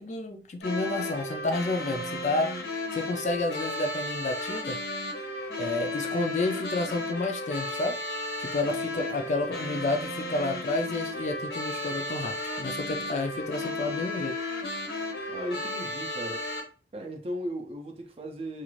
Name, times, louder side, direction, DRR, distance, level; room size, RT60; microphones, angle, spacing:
voice 1, 0.0-2.5 2.9-4.8 5.6-8.0 8.4-14.4, left 2 dB, 40° left, 0.3 m, -30 dB
sound 1, 0.6-16.6, left 1 dB, 70° left, 0.7 m, -34 dB
voice 2, 15.3-16.4 16.9-18.6, equal, 35° right, 0.4 m, -36 dB
2.5 x 2.4 x 3.0 m
head